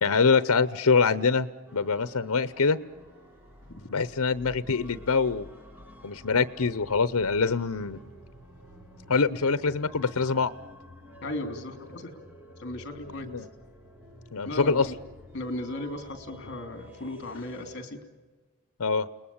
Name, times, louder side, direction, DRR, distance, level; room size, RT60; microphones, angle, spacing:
voice 1, 0.0-1.5 1.7-2.8 3.9-5.5 6.0-8.0 9.1-10.5 13.1-13.5 14.3-14.9 18.8-19.1, left 4 dB, 85° left, 15 dB, 0.8 m, -24 dB
sound 1, 1.7-17.8, left 1 dB, 10° right, 3.1 m, -50 dB
voice 2, 11.2-12.1 12.6-13.3 14.4-14.9 15.3-18.0, left 1 dB, 50° left, 8 dB, 3.2 m, -36 dB
30.0 x 20.0 x 8.8 m, 1.3 s
head